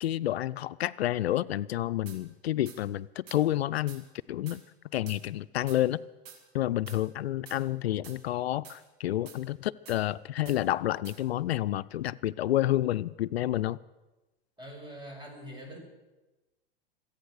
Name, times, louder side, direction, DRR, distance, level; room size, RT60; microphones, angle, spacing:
voice 1, 0.0-4.6 4.9-6.0 6.5-13.8, left 13 dB, 85° left, 17 dB, 0.5 m, -29 dB
sound 1, 2.1-2.2 2.7-2.8 3.3-3.4 3.9-4.0 4.5-4.6 5.1-5.2 5.7-5.8 6.3-6.4 6.9-7.0 7.5-7.6 8.0-8.2 8.6-8.8 9.3-9.4 9.9-10.0 10.5-10.6 11.0-11.2, right 7 dB, 55° right, 3.2 m, -48 dB
voice 2, 14.6-15.8, equal, 15° right, 1 dB, 6.5 m, -44 dB
25.5 x 8.8 x 6.4 m, 1.1 s
hypercardioid pair, 100°, 30 cm